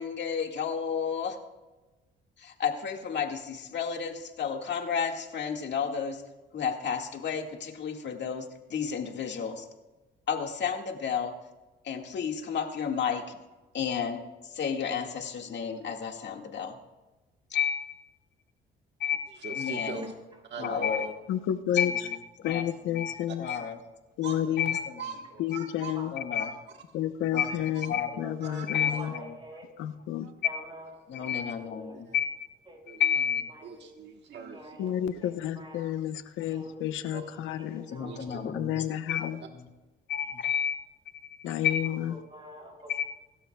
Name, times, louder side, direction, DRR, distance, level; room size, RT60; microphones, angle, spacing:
voice 1, 0.0-1.4 2.4-6.2 6.5-9.7 10.3-11.4 11.8-13.4 13.7-14.2 14.5-16.8 17.5-18.0 19.0-20.1 20.6-21.1 21.7-23.8 24.6-25.0 26.1-26.5 27.3-28.3 28.7-29.3 31.1-32.3 32.9-33.5 37.9-39.2 39.5-39.7 40.1-40.7 41.2-41.4 41.6-41.9 42.9-43.0, left 7 dB, 60° left, 3 dB, 1.9 m, -31 dB
voice 2, 19.3-20.1 20.5-21.1 23.3-23.6 24.2-26.0 26.3-26.6 26.9-27.9 28.4-29.1 30.2-30.3 31.3-31.4 31.9-32.2 32.8-33.1 33.6-34.8 37.1-37.3 38.0-38.4 39.4-39.5 41.4-41.6, right 5 dB, 60° right, 3 dB, 1.4 m, -43 dB
voice 3, 21.3-21.9 22.4-23.5 24.2-24.7 25.4-26.1 26.9-29.1 29.8-30.3 34.8-37.8 38.5-39.4 41.4-42.1, left 11 dB, 90° left, 10 dB, 0.9 m, -31 dB
voice 4, 28.2-29.7 30.4-31.9 32.7-32.8 33.5-33.9 34.5-35.3 35.6-36.0 36.5-38.4 41.6-43.1, equal, 25° right, 0 dB, 5.4 m, -47 dB
25.0 x 12.5 x 2.3 m, 1.1 s
cardioid pair, 90°, 20 cm